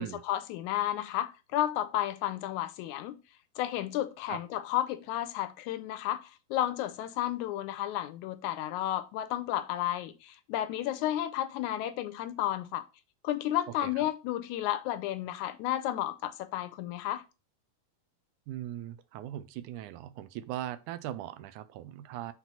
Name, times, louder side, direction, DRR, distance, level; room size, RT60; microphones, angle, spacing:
voice 1, 0.0-3.2 3.6-12.8 13.2-17.2, left 13 dB, 80° left, 1.9 m, -32 dB
voice 2, 18.5-22.3, right 12 dB, 80° right, 2.1 m, -39 dB
6.0 x 4.1 x 5.5 m
omnidirectional pair, 3.6 m